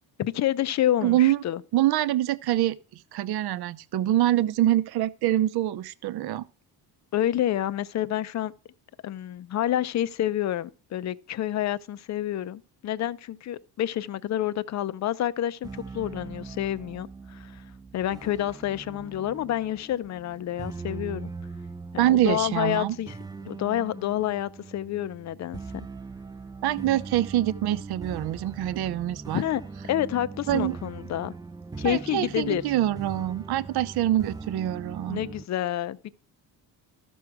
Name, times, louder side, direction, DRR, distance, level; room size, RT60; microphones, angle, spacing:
voice 1, 0.2-1.6 7.1-8.5 9.0-17.6 17.9-21.3 21.9-23.2 23.5-25.9 29.3-29.6 29.9-31.3 31.8-32.6 35.1-36.1, left 12 dB, 40° left, 0.6 m, -28 dB
voice 2, 1.0-1.4 1.7-6.4 22.0-23.0 26.6-29.4 30.5-30.8 31.8-35.2, right 13 dB, 65° right, 0.7 m, -25 dB
sound 1, 15.6-35.4, right 4 dB, 10° right, 0.4 m, -40 dB
13.5 x 6.2 x 4.7 m
cardioid pair, 135°, 41 cm